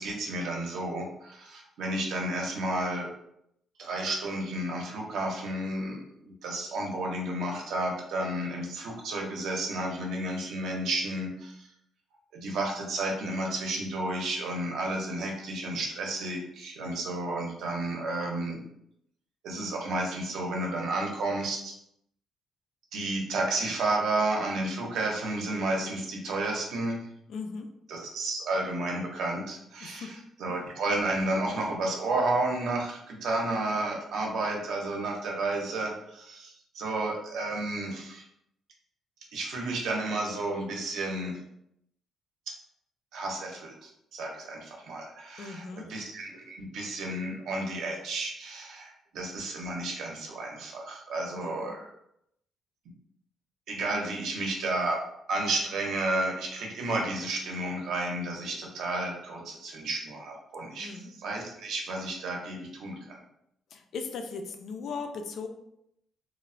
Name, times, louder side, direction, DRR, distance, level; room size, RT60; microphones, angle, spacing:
voice 1, 0.0-3.1 3.8-11.7 12.3-18.7 19.4-21.7 22.9-27.0 27.9-38.2 39.3-41.4 43.1-51.8 53.7-63.1, right 2 dB, 65° right, 0 dB, 0.6 m, -32 dB
voice 2, 27.3-27.7 29.8-30.2 45.4-45.9 51.4-51.7 60.8-61.1 63.7-65.5, left 4 dB, 55° left, 6 dB, 0.3 m, -38 dB
3.0 x 2.0 x 2.5 m, 0.77 s
cardioid pair, 170°, 0 cm